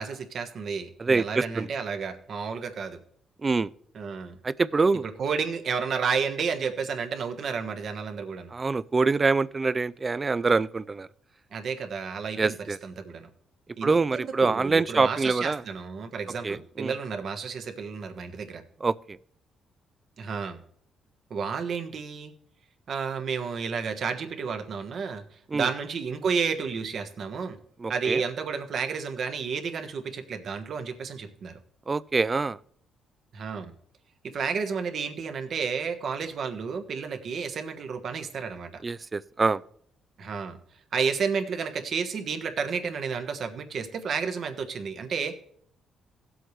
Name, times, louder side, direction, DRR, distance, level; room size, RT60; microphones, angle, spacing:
voice 1, 0.0-3.0 3.9-4.4 5.2-8.5 11.5-13.3 13.8-18.6 20.2-20.6 21.3-22.3 22.9-25.2 25.5-27.6 27.9-31.6 33.3-33.7 34.3-38.7 40.2-40.6 40.9-45.3, right 5 dB, 60° right, 1.3 m, -31 dB
voice 2, 1.0-1.7 3.4-3.7 4.4-5.0 8.5-11.1 12.4-12.8 13.8-15.6 16.4-16.9 18.8-19.2 25.5-25.7 27.8-28.2 31.9-32.6 38.8-39.6, right 4 dB, 30° right, 0.3 m, -25 dB
16.5 x 7.9 x 3.2 m
cardioid pair, 90°, 0 cm